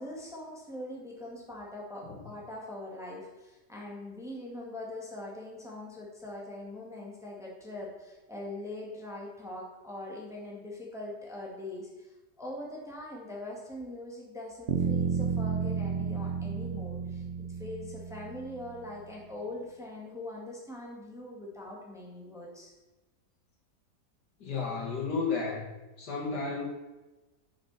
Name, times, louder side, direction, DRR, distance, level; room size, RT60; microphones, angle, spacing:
voice 1, 0.0-17.2 17.5-22.7, left 1 dB, ahead, -3 dB, 2.0 m, -42 dB
sound 1, 14.7-18.6, right 6 dB, 45° right, 0.9 m, -32 dB
voice 2, 24.4-25.7 26.0-26.7, left 4 dB, 75° left, -4 dB, 2.8 m, -33 dB
11.0 x 6.2 x 4.2 m, 1.1 s
omnidirectional pair, 1.8 m